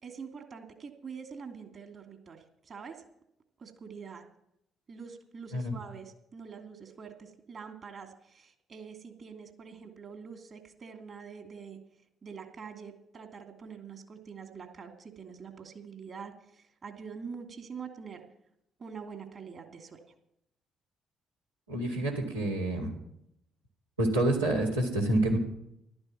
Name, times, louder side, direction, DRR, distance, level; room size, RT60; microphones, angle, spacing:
voice 1, 0.0-3.0 3.6-4.2 4.9-11.8 12.2-18.2 18.8-20.0, right 6 dB, 45° right, 5 dB, 2.8 m, -45 dB
voice 2, 21.7-22.9 24.0-25.4, right 1 dB, 90° right, -4 dB, 2.9 m, -28 dB
14.5 x 12.5 x 5.9 m, 0.78 s
figure-of-eight pair, 45°, 0 cm